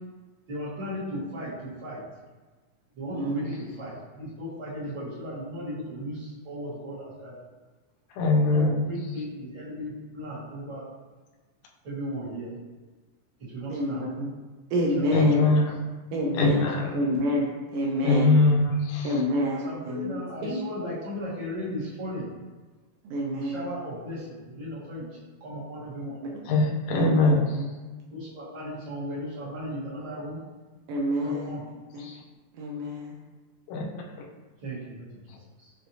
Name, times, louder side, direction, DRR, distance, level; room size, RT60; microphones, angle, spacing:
voice 1, 0.5-2.0 2.9-7.4 8.5-10.8 11.8-12.5 13.4-14.1 14.9-15.6 16.6-16.9 19.5-22.3 23.3-25.1 25.4-26.2 28.1-30.4 31.1-31.6 34.6-35.1 35.6-35.7, equal, 50° right, -9 dB, 1.6 m, -36 dB
voice 2, 3.1-3.5 13.7-14.3 14.7-15.5 16.1-16.6 16.9-17.4 17.7-18.4 19.0-20.6 23.1-23.7 26.2-26.4 26.9-27.6 30.9-31.6 31.9-32.1 32.6-33.1, equal, 85° right, -2 dB, 1.4 m, -28 dB
voice 3, 8.2-8.8 15.1-15.7 16.4-16.9 18.0-19.2 26.5-27.6 32.0-32.2 33.7-33.8, left 2 dB, 80° left, -1 dB, 1.8 m, -22 dB
5.5 x 2.6 x 2.7 m, 1.3 s
omnidirectional pair, 3.3 m